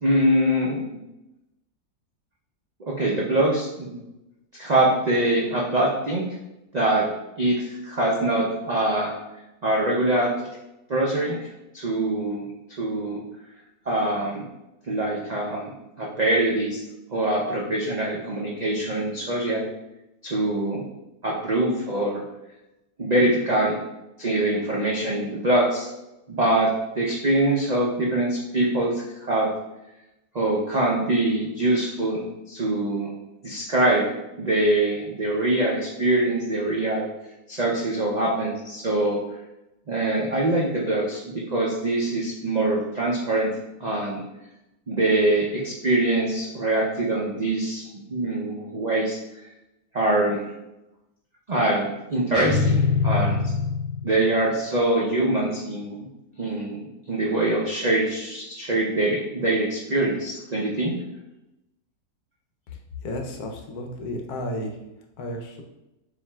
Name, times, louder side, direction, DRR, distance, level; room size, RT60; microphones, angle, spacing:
voice 1, 0.0-0.8 2.8-4.0 4.6-6.3 6.7-7.1 7.4-9.1 9.6-10.3 10.9-11.5 11.7-12.5 12.8-13.2 13.9-14.4 14.9-15.7 16.0-16.8 17.1-19.6 20.2-20.8 21.2-22.2 23.0-23.8 24.2-25.9 26.3-29.5 30.3-33.1 33.4-34.1 34.4-37.1 37.5-39.2 39.9-43.5 43.8-44.2 44.9-49.2 49.9-50.4 51.5-53.5 54.0-56.1 56.4-61.0, right 1 dB, 90° right, -4 dB, 0.3 m, -24 dB
sound 1, 52.3-54.4, left 4 dB, 15° right, 1.3 m, -23 dB
voice 2, 63.0-64.7 65.2-65.6, left 1 dB, 75° left, 2 dB, 1.2 m, -32 dB
7.0 x 2.7 x 2.3 m, 0.93 s
omnidirectional pair, 1.7 m